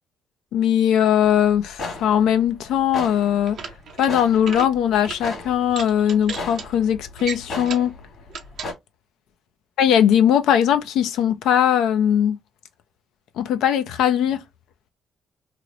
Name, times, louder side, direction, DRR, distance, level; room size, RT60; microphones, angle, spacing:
voice 1, 0.5-3.6 4.0-7.9 9.8-12.4 13.4-14.4, left 9 dB, 85° left, 0.5 m, -19 dB
sound 1, 1.2-8.7, left 3 dB, 55° left, 1.6 m, -36 dB
sound 2, 3.3-4.1 4.4-4.7 5.0-5.2 5.7-6.7 7.2-7.9 8.3-8.7, right 7 dB, 70° right, 0.7 m, -34 dB
3.1 x 2.0 x 3.7 m
cardioid pair, 90°, 0 cm